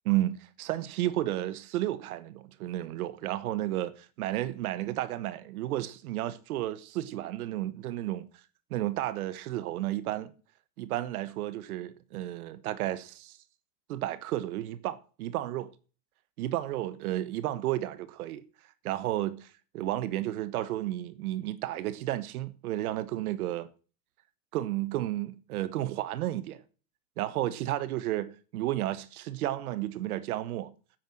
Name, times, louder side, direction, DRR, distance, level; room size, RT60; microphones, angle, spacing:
voice 1, 0.0-8.3 8.7-10.3 10.8-13.4 13.9-15.7 16.4-18.4 18.8-23.7 24.5-26.6 27.2-30.7, right 14 dB, 90° right, 1.3 m, -32 dB
9.2 x 8.8 x 7.8 m
supercardioid pair, 165°, 43 cm